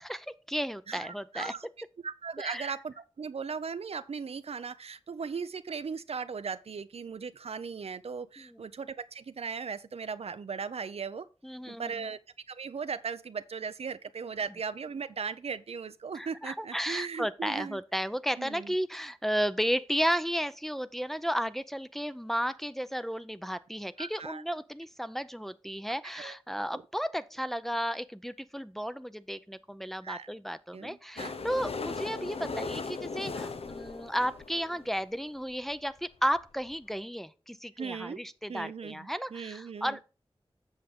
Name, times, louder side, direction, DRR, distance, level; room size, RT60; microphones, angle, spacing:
voice 1, 0.0-1.5 2.4-2.7 8.4-8.6 11.4-12.1 16.1-40.0, equal, 5° left, 0.5 m, -33 dB
voice 2, 0.9-1.7 2.0-11.3 11.7-12.2 12.5-17.8 18.4-18.7 24.0-24.4 26.1-26.4 26.6-26.8 30.0-30.3 30.7-31.5 37.8-38.2 38.5-40.0, right 5 dB, 90° right, 0.5 m, -38 dB
sound 1, 31.2-35.0 35.7-35.8 36.0-36.1 36.3-36.4 36.7-36.8, left 4 dB, 75° left, 0.6 m, -38 dB
8.0 x 6.4 x 3.6 m
wide cardioid pair, 55°, 10 cm